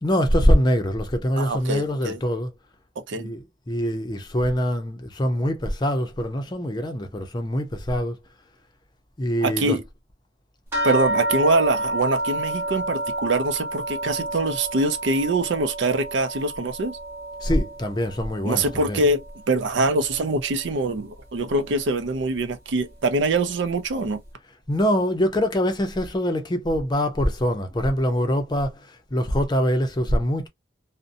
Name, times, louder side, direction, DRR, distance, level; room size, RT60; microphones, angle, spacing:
voice 1, 0.0-2.5 3.2-8.2 9.2-9.8 17.4-19.0 24.7-30.5, equal, 25° left, 0.5 m, -24 dB
voice 2, 1.4-2.2 3.1-3.3 9.4-9.8 10.8-17.0 18.4-24.2, right 2 dB, 80° right, 0.5 m, -24 dB
sound 1, 10.7-19.5 19.9-20.7 21.5-21.6 22.0-22.2, right 1 dB, 15° right, 0.9 m, -30 dB
2.5 x 2.1 x 2.6 m
head